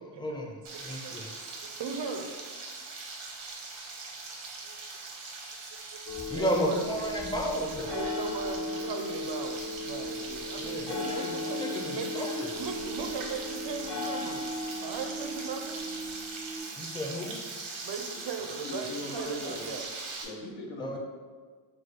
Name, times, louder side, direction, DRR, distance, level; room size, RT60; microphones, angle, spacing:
voice 1, 0.2-1.3 6.3-7.9 10.6-12.5 16.8-17.4 20.8-21.0, equal, 10° left, 0 dB, 0.5 m, -33 dB
Frying (food), 0.6-20.2, right 3 dB, 90° right, 1.0 m, -41 dB
voice 2, 0.7-2.3 4.6-5.1 5.9-6.0 6.3-6.8 7.9-12.3 12.5-14.5 14.8-15.8 17.8-19.9, right 5 dB, 65° right, 5 dB, 0.6 m, -38 dB
sound 1, 6.1-16.6, left 2 dB, 45° left, 0.8 m, -37 dB
voice 3, 18.6-19.7 20.2-21.0, left 1 dB, 80° left, -1 dB, 1.0 m, -39 dB
4.4 x 2.3 x 4.6 m, 1.5 s
wide cardioid pair, 110°, 46 cm